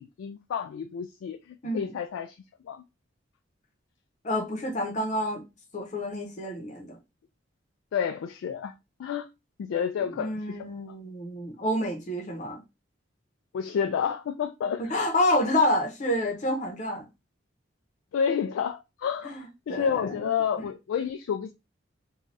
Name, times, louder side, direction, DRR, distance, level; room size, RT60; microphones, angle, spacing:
voice 1, 0.0-2.4 2.6-2.8 7.9-8.7 9.0-9.3 9.6-10.4 13.5-15.0 18.1-21.5, left 7 dB, 85° left, 0.3 m, -30 dB
voice 2, 1.6-1.9 4.2-5.4 5.7-7.0 10.1-12.6 14.8-17.1 19.2-20.3, left 1 dB, 40° left, 0.7 m, -28 dB
2.6 x 2.3 x 3.2 m
head